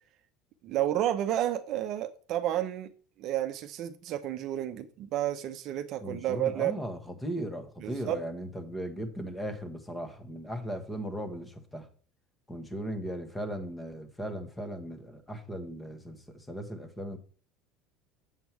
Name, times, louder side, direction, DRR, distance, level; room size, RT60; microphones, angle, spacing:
voice 1, 0.6-2.9 3.2-6.8 7.8-8.2, right 12 dB, 50° right, 0.7 m, -31 dB
voice 2, 6.0-11.9 12.5-17.2, equal, 10° left, 1.4 m, -37 dB
7.5 x 7.3 x 4.6 m
cardioid pair, 140°, 0 cm